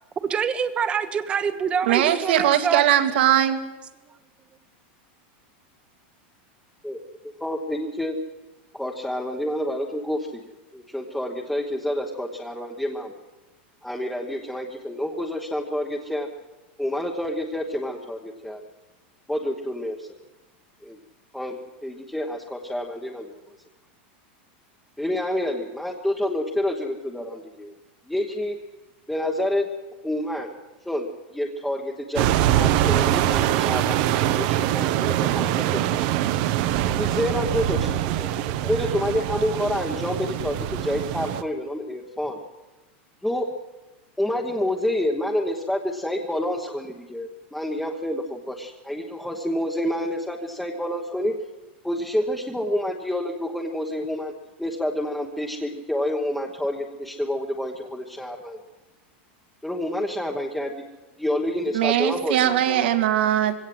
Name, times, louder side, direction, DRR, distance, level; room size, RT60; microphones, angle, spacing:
voice 1, 0.2-2.8, right 7 dB, 20° right, 11 dB, 1.2 m, -25 dB
voice 2, 1.9-3.6 61.7-63.5, right 12 dB, 70° right, 7 dB, 2.3 m, -20 dB
voice 3, 7.4-8.2 8.7-13.1 13.8-16.3 16.8-18.6 19.3-20.1 20.8-21.0 21.3-23.3 25.0-27.7 28.1-28.6 29.1-29.7 30.0-30.5 30.8-36.0 36.9-38.3 38.6-42.4 43.2-43.5 44.2-51.3 51.8-54.3 54.6-58.6 59.6-60.8 61.2-63.0, left 1 dB, 5° left, -1 dB, 1.3 m, -28 dB
sound 1, 32.2-41.4, right 12 dB, 50° right, 1.0 m, -23 dB
22.0 x 17.0 x 7.8 m, 1.1 s
supercardioid pair, 160°, 6 cm